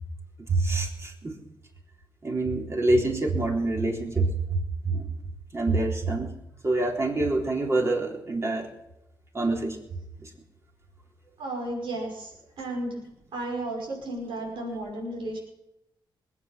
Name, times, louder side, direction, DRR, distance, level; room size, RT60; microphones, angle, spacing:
voice 1, 0.5-1.3 2.2-4.3 4.9-5.1 5.5-6.3 6.6-8.7 9.3-9.8, right 2 dB, 35° right, -1 dB, 3.7 m, -26 dB
voice 2, 11.4-12.3 12.6-13.0 13.3-15.4, right 1 dB, 85° right, -2 dB, 5.6 m, -33 dB
20.5 x 9.0 x 6.1 m, 0.88 s
cardioid pair, 80°, 8 cm